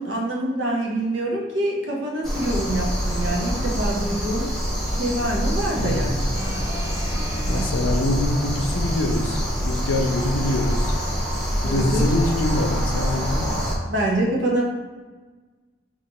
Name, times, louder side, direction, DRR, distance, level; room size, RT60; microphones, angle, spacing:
voice 1, 0.0-4.5 4.8-6.3 7.5-7.7 11.6-12.1 13.9-14.6, right 1 dB, 70° right, -2 dB, 0.9 m, -25 dB
sound 1, 2.2-13.7, equal, ahead, 0.8 m, -25 dB
voice 2, 5.7-6.1 7.4-11.0 11.6-13.7, left 2 dB, 85° left, 2 dB, 0.6 m, -25 dB
sound 2, 6.3-7.6 8.6-8.7, equal, 45° right, 1.1 m, -36 dB
3.0 x 2.5 x 4.1 m, 1.3 s
head